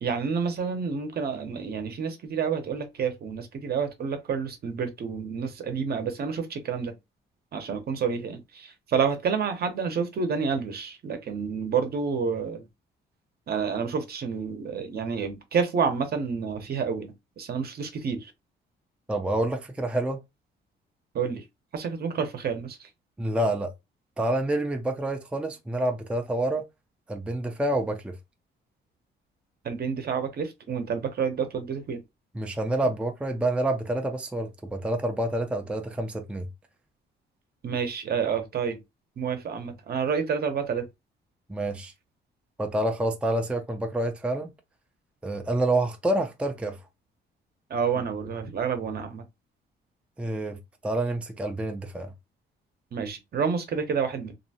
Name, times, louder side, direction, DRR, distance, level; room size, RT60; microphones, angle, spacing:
voice 1, 0.0-6.9 7.5-12.7 13.5-18.3 21.1-21.4 21.7-22.9 29.6-32.0 37.6-38.8 39.2-40.9 47.7-49.2 52.9-54.3, right 6 dB, 50° right, 0.8 m, -29 dB
voice 2, 19.1-20.2 23.2-23.7 24.2-26.6 27.1-28.2 32.4-36.5 41.5-41.9 42.6-44.5 45.2-46.8 50.2-52.1, right 1 dB, 5° right, 0.4 m, -28 dB
2.7 x 2.2 x 2.8 m
cardioid pair, 90°, 20 cm